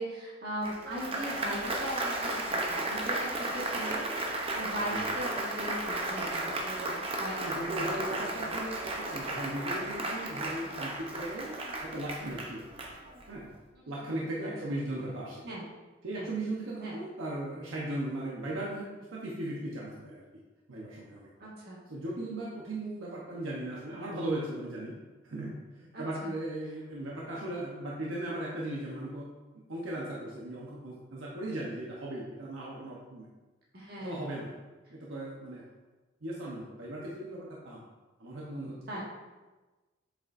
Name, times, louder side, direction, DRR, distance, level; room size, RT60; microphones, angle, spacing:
voice 1, 0.0-8.6 14.4-14.5 15.4-15.7 16.1-16.3 16.8-17.0 21.4-21.8 25.9-26.3 33.7-34.4 38.9-39.0, right 1 dB, 50° right, -4 dB, 1.7 m, -39 dB
Applause, 0.6-13.4, right 2 dB, 25° right, 0.7 m, -34 dB
voice 2, 7.4-11.6 11.8-12.7 13.3-13.5 13.9-15.4 16.0-20.4 20.7-21.3 21.9-25.0 25.2-29.3 29.7-33.3 34.0-34.5 34.9-35.6 36.2-37.8 38.2-39.0, right 1 dB, 75° right, -5 dB, 1.0 m, -37 dB
7.8 x 5.1 x 2.6 m, 1.2 s
head